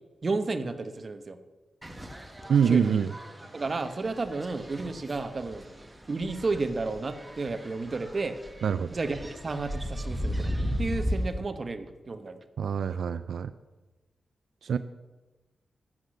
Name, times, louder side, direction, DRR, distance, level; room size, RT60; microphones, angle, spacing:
voice 1, 0.2-1.4 2.6-3.0 3.5-5.6 6.1-8.4 8.9-9.2 9.4-12.4, right 3 dB, 40° right, 8 dB, 1.1 m, -32 dB
sound 1, 1.8-11.3, equal, 15° right, 1.6 m, -36 dB
voice 2, 2.5-3.1 8.6-8.9 12.6-13.5 14.6-14.8, right 7 dB, 80° right, 12 dB, 0.4 m, -25 dB
12.0 x 8.1 x 6.5 m, 1.2 s
wide cardioid pair, 120°, 0 cm